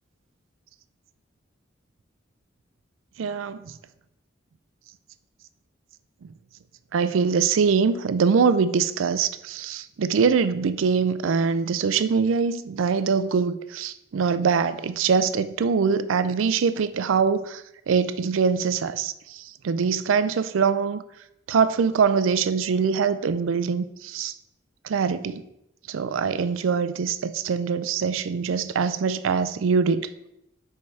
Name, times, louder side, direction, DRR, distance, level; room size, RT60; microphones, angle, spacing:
voice 1, 3.2-3.8 6.9-17.6 17.9-21.0 21.5-24.3 24.8-25.4 25.9-30.1, right 5 dB, 85° right, 13 dB, 0.4 m, -23 dB
6.9 x 4.7 x 3.3 m, 0.83 s
head